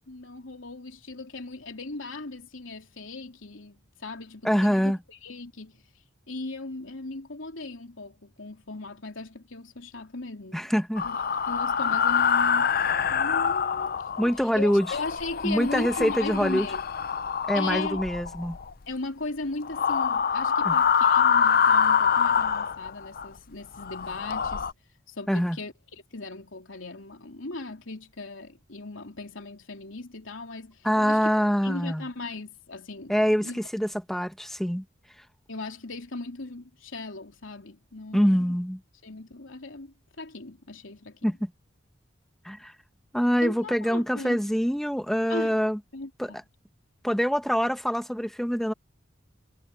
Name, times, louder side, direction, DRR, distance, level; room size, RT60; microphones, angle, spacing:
voice 1, 0.0-5.8 6.3-10.7 11.0-16.8 17.5-18.0 18.9-24.7 25.1-31.3 31.6-33.6 35.5-38.6 39.0-41.3 43.4-44.4 45.3-45.6 45.9-46.4, left 2 dB, 90° left, 3.1 m, -38 dB
voice 2, 4.4-5.0 10.5-11.1 14.2-15.0 15.4-16.7 17.5-18.6 20.6-20.8 25.3-25.6 30.8-32.1 33.1-34.8 38.1-38.8 41.2-41.5 42.4-42.7 43.1-45.8 46.2-46.4 47.0-48.7, equal, ahead, 1.2 m, -25 dB
sound 1, 11.0-14.4 14.7-18.7 19.6-23.3 23.7-24.7, left 7 dB, 50° left, 0.6 m, -25 dB
head